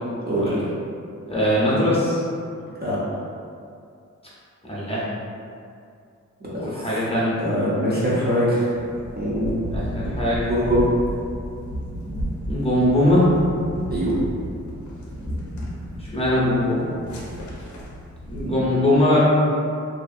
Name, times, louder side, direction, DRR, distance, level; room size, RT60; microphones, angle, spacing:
voice 1, 1.3-2.2 4.6-5.0 6.6-7.4 9.7-10.4 12.5-13.3 16.0-16.9 18.3-19.2, left 1 dB, 20° left, -9 dB, 0.6 m, -21 dB
voice 2, 6.5-6.9 7.4-8.7 9.2-9.6 10.4-10.9 13.9-14.1 18.4-18.7, equal, 35° right, -8 dB, 0.6 m, -23 dB
sound 1, 8.7-18.5, equal, 80° left, 0.5 m, -33 dB
2.6 x 2.4 x 2.4 m, 2.4 s
wide cardioid pair, 125°, 29 cm